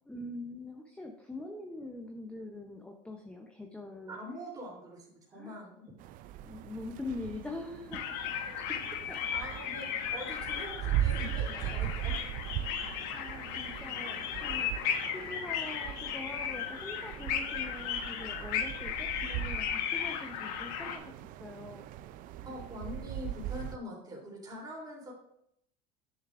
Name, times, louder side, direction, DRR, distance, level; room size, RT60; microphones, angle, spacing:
voice 1, 0.1-4.2 5.3-5.6 6.4-8.3 9.1-9.7 12.7-14.7 15.1-21.9, left 2 dB, 5° left, 2 dB, 0.7 m, -44 dB
voice 2, 4.1-5.8 8.4-12.3 22.4-25.1, equal, 20° right, -4 dB, 3.0 m, -44 dB
sound 1, 6.0-23.8, right 12 dB, 55° right, 0.4 m, -39 dB
sound 2, 7.9-21.0, left 8 dB, 65° left, 1.0 m, -36 dB
10.0 x 6.6 x 2.5 m, 0.75 s
cardioid pair, 135°, 17 cm